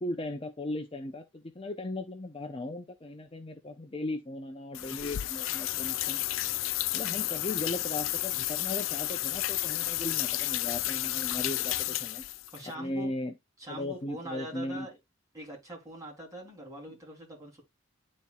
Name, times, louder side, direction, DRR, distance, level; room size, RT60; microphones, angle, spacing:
voice 1, 0.0-6.2 6.9-12.2 12.8-13.3 13.7-14.9, left 1 dB, 30° left, 0.7 m, -37 dB
sound 1, 4.7-12.6, left 15 dB, 85° left, 0.4 m, -32 dB
voice 2, 12.5-13.1 13.6-15.0 15.3-17.6, right 1 dB, 20° right, 3.3 m, -43 dB
11.0 x 4.2 x 2.4 m
head